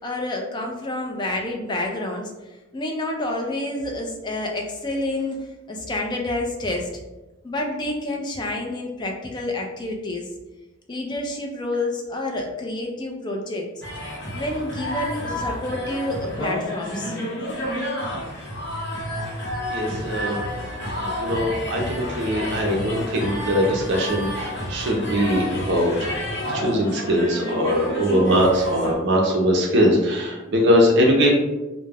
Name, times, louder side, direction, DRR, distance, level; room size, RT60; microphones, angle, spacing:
voice 1, 0.0-7.0 7.4-10.3 10.9-13.7 14.3-17.2, left 1 dB, 20° left, 1 dB, 0.3 m, -28 dB
sound 1, 13.8-28.9, equal, 60° left, 0.7 m, -30 dB
voice 2, 19.7-20.4 21.0-26.1 26.5-31.3, equal, 55° right, 0 dB, 0.5 m, -21 dB
2.2 x 2.0 x 3.3 m, 1.1 s
head